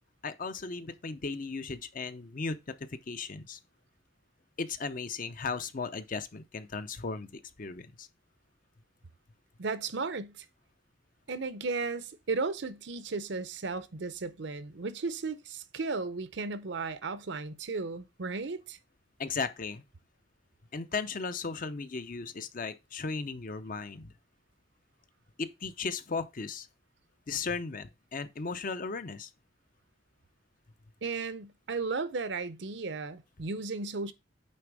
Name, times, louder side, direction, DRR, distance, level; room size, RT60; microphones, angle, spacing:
voice 1, 0.2-3.6 4.6-8.1 19.2-19.8 20.7-24.1 25.4-26.7 27.3-29.3, left 4 dB, 45° left, 0.6 m, -36 dB
voice 2, 9.6-10.5 11.3-18.8 31.0-34.1, right 4 dB, 60° right, 0.7 m, -35 dB
8.6 x 3.5 x 4.7 m
head